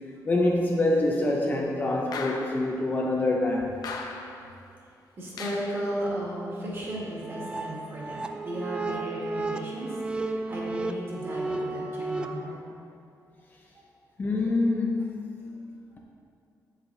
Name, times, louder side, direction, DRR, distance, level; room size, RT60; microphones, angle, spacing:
voice 1, 0.3-3.8 14.2-15.2, left 2 dB, 25° left, -1 dB, 0.7 m, -25 dB
sound 1, 2.1-2.8 3.8-4.5 5.4-5.9, left 4 dB, 70° left, 0.8 m, -37 dB
voice 2, 5.2-12.7 13.7-13.8 15.4-15.5, right 1 dB, 35° right, -5 dB, 2.0 m, -35 dB
sound 2, 6.9-12.3, right 2 dB, 15° right, 0.3 m, -33 dB
8.2 x 7.4 x 3.9 m, 2.4 s
wide cardioid pair, 180°, 7 cm